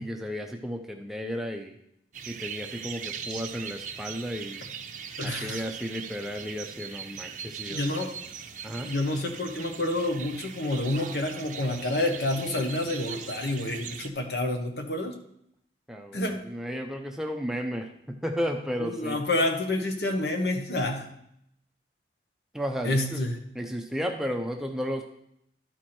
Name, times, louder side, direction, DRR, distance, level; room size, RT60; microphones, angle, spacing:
voice 1, 0.0-1.7 2.3-4.7 5.2-7.9 8.6-8.9 15.9-19.2 22.5-23.2 23.6-25.0, equal, ahead, 3 dB, 0.6 m, -33 dB
sound 1, 2.1-14.1, right 7 dB, 45° right, 0.6 m, -40 dB
voice 2, 5.2-5.6 7.7-8.2 8.8-15.2 16.1-16.4 18.8-21.1 22.8-23.4, left 1 dB, 65° left, 4 dB, 1.2 m, -28 dB
12.0 x 4.7 x 4.4 m, 0.74 s
head